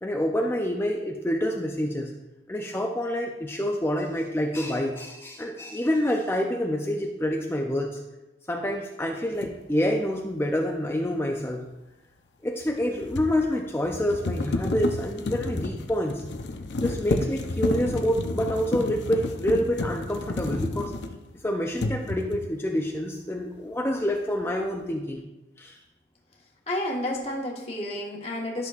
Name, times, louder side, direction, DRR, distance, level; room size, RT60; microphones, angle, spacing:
voice 1, 0.0-2.1 2.5-8.0 8.5-11.7 12.4-16.2 16.8-20.9 21.4-25.2 25.6-25.8, equal, 15° left, 1 dB, 0.5 m, -27 dB
sound 1, 9.4-9.6 12.6-21.4 21.7-22.6, left 2 dB, 80° left, 0.6 m, -31 dB
voice 2, 26.7-28.7, left 1 dB, 35° left, -2 dB, 1.4 m, -30 dB
12.0 x 6.2 x 2.5 m, 1.0 s
head